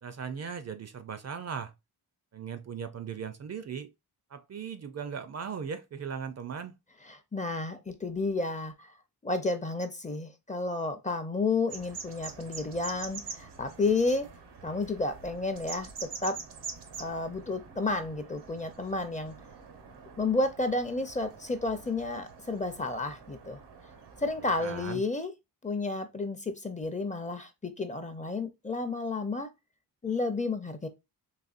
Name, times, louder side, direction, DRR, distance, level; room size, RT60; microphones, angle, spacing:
voice 1, 0.0-1.7 2.3-3.9 4.3-6.8 24.4-25.0, right 6 dB, 40° right, 0.4 m, -38 dB
voice 2, 7.1-8.9 9.2-14.3 14.6-16.4 17.0-19.3 20.2-23.6 24.2-25.3 25.6-29.5 30.0-30.9, left 3 dB, 20° left, 0.5 m, -31 dB
sound 1, 11.7-24.9, right 5 dB, 90° right, 0.9 m, -46 dB
4.1 x 3.0 x 2.4 m
cardioid pair, 100°, 39 cm